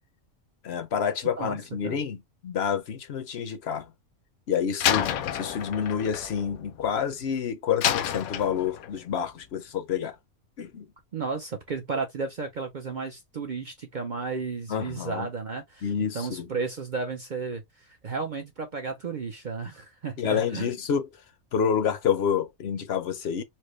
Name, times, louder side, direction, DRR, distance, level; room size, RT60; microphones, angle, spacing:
voice 1, 0.6-3.9 4.5-10.2 10.6-10.9 14.7-15.3 15.8-16.5 20.2-21.1 21.5-23.4, left 7 dB, 60° left, 0.8 m, -28 dB
Slam, 4.8-7.2 7.8-9.0, left 10 dB, 75° left, 1.1 m, -29 dB
voice 2, 11.1-15.9 16.1-20.7, right 4 dB, 55° right, 0.5 m, -33 dB
4.3 x 2.1 x 3.1 m
omnidirectional pair, 1.5 m